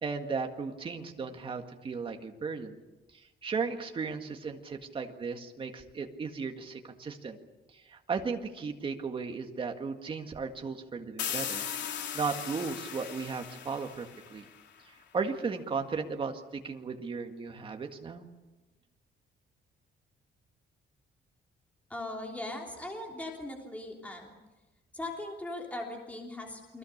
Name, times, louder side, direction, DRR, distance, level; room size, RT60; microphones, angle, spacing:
voice 1, 0.0-2.8 3.1-7.4 7.7-11.6 12.1-14.5 15.1-18.2, right 5 dB, 30° right, 4 dB, 1.9 m, -35 dB
sound 1, 11.2-14.8, left 8 dB, 70° left, 3.6 m, -38 dB
voice 2, 21.9-24.3 24.9-26.8, left 1 dB, 10° left, 0 dB, 3.3 m, -39 dB
29.5 x 22.5 x 6.7 m, 1.1 s
cardioid pair, 170°, 19 cm